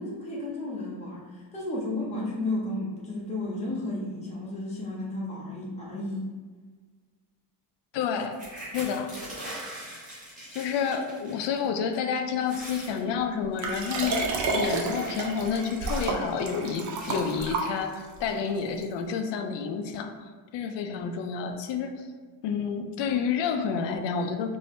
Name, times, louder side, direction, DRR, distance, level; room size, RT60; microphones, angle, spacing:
voice 1, 0.0-6.2, left 2 dB, 15° left, -4 dB, 0.6 m, -33 dB
voice 2, 7.9-8.4 8.7-9.3 10.5-22.1 22.4-24.6, left 6 dB, 65° left, 6 dB, 0.5 m, -29 dB
sound 1, 8.3-11.6 11.9-12.2 12.4-13.0 13.5-16.2 17.0-17.5 18.2-18.3 18.6-18.9, right 1 dB, 15° right, 1.4 m, -42 dB
Liquid, 13.6-18.2 18.8-18.9, right 3 dB, 40° right, 0.5 m, -30 dB
4.3 x 2.7 x 3.1 m, 1.4 s
cardioid pair, 175°, 47 cm